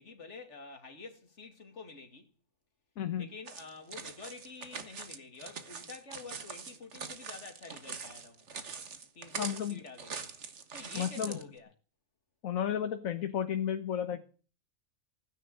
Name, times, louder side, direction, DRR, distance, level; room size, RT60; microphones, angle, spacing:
voice 1, 0.0-2.3 3.2-8.7 9.1-10.3 10.7-11.7, left 4 dB, 55° left, 2.5 m, -48 dB
voice 2, 3.0-3.3 9.3-9.8 10.9-11.4 12.4-14.3, left 9 dB, 70° left, 1.5 m, -33 dB
sound 1, 3.5-11.4, right 5 dB, 55° right, 1.7 m, -43 dB
16.0 x 10.0 x 7.8 m
omnidirectional pair, 1.5 m